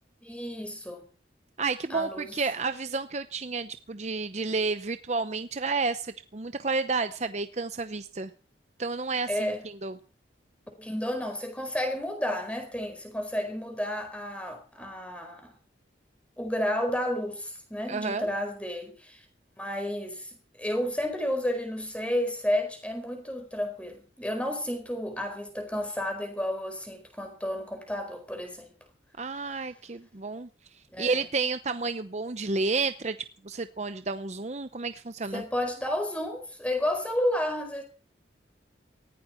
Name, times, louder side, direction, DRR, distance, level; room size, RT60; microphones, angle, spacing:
voice 1, 0.2-1.0 1.9-2.3 9.3-9.6 10.8-15.5 16.4-19.2 19.6-28.7 30.9-31.2 35.3-37.8, left 1 dB, 5° left, 4.6 m, -31 dB
voice 2, 1.6-8.3 8.8-10.0 17.9-18.3 29.2-30.5 31.0-35.4, right 4 dB, 40° right, 0.7 m, -31 dB
19.0 x 15.5 x 4.4 m
head